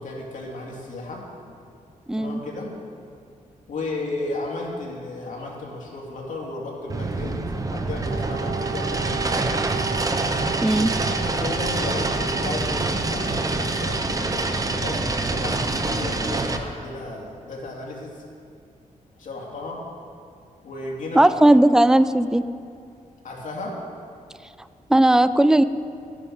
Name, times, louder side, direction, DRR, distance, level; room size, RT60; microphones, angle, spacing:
voice 1, 0.0-1.5 2.1-2.7 3.7-9.7 10.8-18.2 19.2-19.8 20.6-21.3 23.2-23.8, left 2 dB, 65° left, -2 dB, 2.8 m, -34 dB
voice 2, 2.1-2.4 10.6-10.9 21.1-22.4 24.9-25.6, right 1 dB, 5° right, 13 dB, 0.4 m, -16 dB
sound 1, 6.9-16.6, right 2 dB, 25° right, 0.8 m, -26 dB
Wind instrument woodwind instrument, 8.0-15.8, right 6 dB, 85° right, 0.6 m, -35 dB
12.5 x 10.0 x 5.5 m, 2.4 s
cardioid pair, 105°, 14 cm